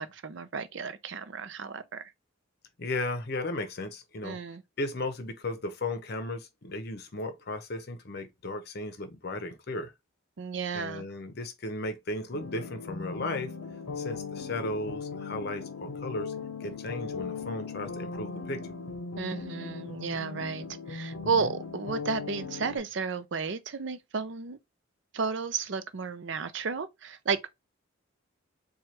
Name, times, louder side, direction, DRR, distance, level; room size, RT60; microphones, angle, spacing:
voice 1, 0.0-2.1 4.2-4.6 10.4-11.1 19.2-24.6 25.1-27.5, right 5 dB, 60° right, 0.5 m, -33 dB
voice 2, 2.8-4.4 4.8-9.9 10.7-13.5 14.0-16.3 16.6-18.6 21.4-21.5, left 2 dB, 50° left, 0.7 m, -35 dB
sound 1, 12.3-22.8, left 4 dB, 80° left, 0.7 m, -38 dB
4.4 x 2.3 x 3.1 m
head